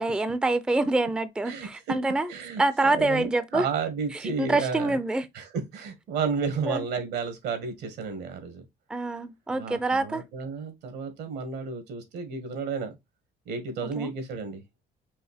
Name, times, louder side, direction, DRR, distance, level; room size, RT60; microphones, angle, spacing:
voice 1, 0.0-2.3 2.6-3.7 4.1-5.3 6.7-6.8 8.9-10.2 14.0-14.1, right 2 dB, 5° right, 0.4 m, -26 dB
voice 2, 1.5-2.0 2.3-5.0 5.3-8.6 9.5-12.9 13.4-14.6, right 5 dB, 80° right, 1.7 m, -32 dB
5.5 x 2.5 x 3.5 m
cardioid pair, 110°, 17 cm